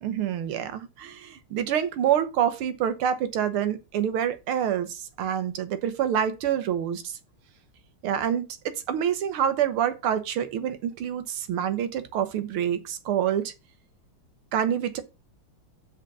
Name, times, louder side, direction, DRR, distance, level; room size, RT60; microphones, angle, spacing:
voice 1, 0.0-7.2 8.0-13.5 14.5-15.0, right 9 dB, 90° right, 1.9 m, -27 dB
7.7 x 5.1 x 5.5 m
omnidirectional pair, 2.3 m